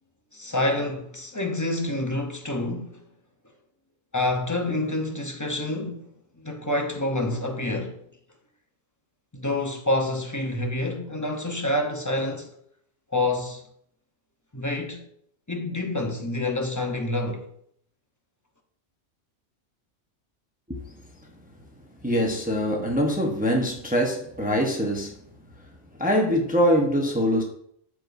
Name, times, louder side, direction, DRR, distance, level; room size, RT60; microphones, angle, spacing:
voice 1, 0.3-3.1 4.1-6.1 6.4-8.0 9.3-12.5 13.1-13.6 14.5-15.0 15.5-17.4, left 2 dB, 15° left, 0.8 m, -27 dB
voice 2, 22.0-25.1 26.0-27.4, equal, 10° right, 0.9 m, -23 dB
12.5 x 4.6 x 2.7 m
omnidirectional pair, 1.3 m